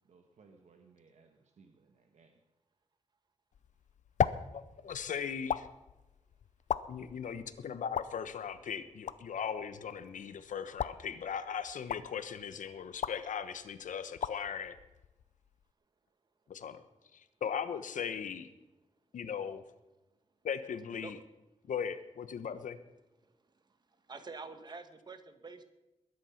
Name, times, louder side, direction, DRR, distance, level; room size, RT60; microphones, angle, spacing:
voice 1, 0.1-2.4, right 4 dB, 65° right, 4 dB, 1.3 m, -62 dB
sound 1, 3.5-15.7, left 8 dB, 70° left, 0.6 m, -40 dB
voice 2, 4.5-5.7 6.9-14.7 16.5-16.8 17.1-18.5 19.1-19.6 20.4-21.2 21.7-22.8, left 7 dB, 90° left, 12 dB, 1.1 m, -38 dB
voice 3, 24.1-25.7, right 4 dB, 35° right, 10 dB, 1.2 m, -46 dB
21.0 x 10.5 x 5.8 m, 1.0 s
wide cardioid pair, 165°, 13 cm